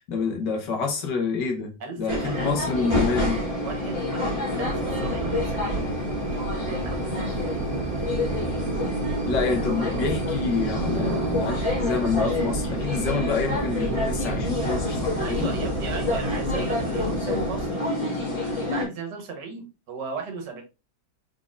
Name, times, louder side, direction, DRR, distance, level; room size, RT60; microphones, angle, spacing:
voice 1, 0.1-1.7 2.0-3.5 9.3-15.5, left 5 dB, 80° left, 1.7 m, -27 dB
voice 2, 1.8-2.6 3.6-5.9 6.6-7.1 15.2-18.0 18.7-20.6, right 4 dB, 75° right, 1.8 m, -35 dB
sound 1, 2.1-18.8, left 2 dB, 30° left, 1.9 m, -28 dB
sound 2, 4.6-17.7, right 2 dB, 60° right, 1.7 m, -31 dB
4.7 x 4.1 x 2.4 m
omnidirectional pair, 1.9 m